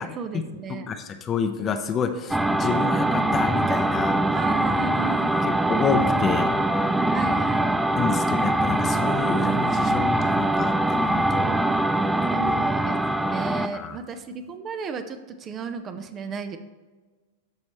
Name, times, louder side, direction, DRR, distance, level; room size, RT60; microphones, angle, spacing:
voice 1, 0.0-0.9 4.3-5.7 7.1-7.7 11.4-12.0 12.3-16.6, right 5 dB, 30° right, 9 dB, 0.7 m, -34 dB
voice 2, 0.9-4.2 5.7-6.5 8.0-11.6 12.4-12.5 13.7-14.0, left 6 dB, 30° left, 8 dB, 0.8 m, -28 dB
sound 1, 2.3-13.8, right 1 dB, 5° right, 0.4 m, -23 dB
13.5 x 5.3 x 3.1 m, 1.3 s
figure-of-eight pair, 95°, 0 cm